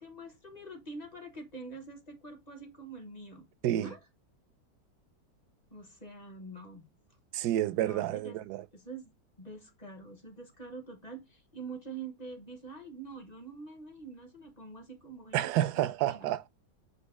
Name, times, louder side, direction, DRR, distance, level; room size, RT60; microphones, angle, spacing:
voice 1, 0.0-3.5 3.7-4.0 5.7-6.9 7.8-8.4 8.7-16.3, right 3 dB, 30° left, 0.9 m, -45 dB
voice 2, 7.3-8.6 15.3-16.5, right 13 dB, 75° right, 1.1 m, -29 dB
8.2 x 2.9 x 4.7 m
omnidirectional pair, 1.9 m